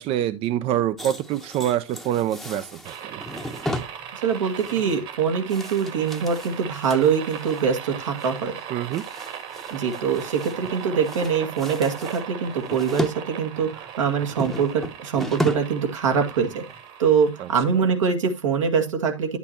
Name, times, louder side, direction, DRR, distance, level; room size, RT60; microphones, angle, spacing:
voice 1, 0.0-2.7 3.0-3.2 8.7-9.0 17.4-17.5, right 11 dB, 35° right, 0.6 m, -25 dB
sound 1, 1.0-7.6 8.0-8.3 8.6-10.8 11.0-13.2 13.5-15.8 16.1-16.3 16.7-16.8, equal, ahead, 0.9 m, -34 dB
sound 2, 2.8-18.0, right 9 dB, 55° right, 2.3 m, -38 dB
voice 2, 4.1-8.5 9.7-16.6 17.0-19.4, right 6 dB, 80° right, 2.1 m, -23 dB
10.5 x 8.4 x 2.8 m
hypercardioid pair, 100°, 16 cm